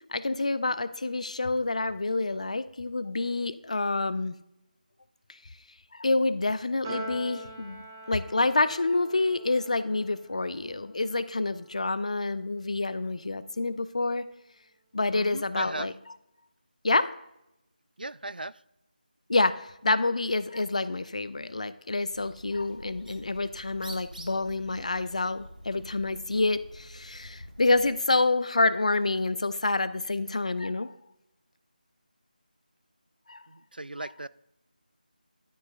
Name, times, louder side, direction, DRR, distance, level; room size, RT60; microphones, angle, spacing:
voice 1, 0.1-4.3 5.9-14.2 14.9-15.9 16.8-17.1 19.3-30.9 33.3-33.4, left 3 dB, 45° left, 15 dB, 0.4 m, -28 dB
Piano, 6.8-13.4, right 2 dB, 20° right, 2.3 m, -45 dB
voice 2, 15.1-15.9 18.0-18.6 33.5-34.3, right 2 dB, 75° right, 18 dB, 0.3 m, -37 dB
Bird, 22.0-28.0, right 1 dB, 60° right, 1.3 m, -47 dB
12.5 x 6.2 x 2.4 m, 0.86 s
figure-of-eight pair, 160°, 5 cm